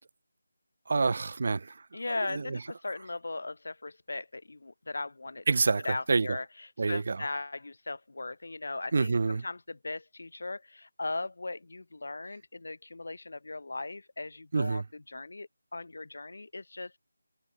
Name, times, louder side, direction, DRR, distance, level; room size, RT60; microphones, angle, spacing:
voice 1, 0.9-2.6 5.5-6.4 6.8-7.3 8.9-9.4 14.5-14.8, right 4 dB, 35° right, 0.5 m, -28 dB
voice 2, 1.9-5.4 5.8-6.4 6.9-17.0, left 2 dB, 55° left, 1.4 m, -38 dB
figure-of-eight pair, 180°, 0 cm